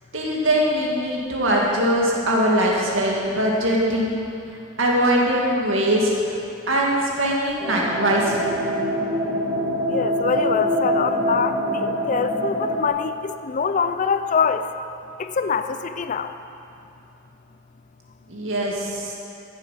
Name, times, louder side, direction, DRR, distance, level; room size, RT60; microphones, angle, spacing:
voice 1, 0.1-4.2 4.8-6.4 6.7-8.5 18.3-19.1, right 1 dB, 80° right, -3 dB, 2.3 m, -21 dB
sound 1, 7.6-12.9, equal, 10° right, 1.9 m, -24 dB
voice 2, 9.9-14.7 15.2-16.3, left 5 dB, 40° left, 10 dB, 0.4 m, -24 dB
13.5 x 8.0 x 5.8 m, 2.7 s
head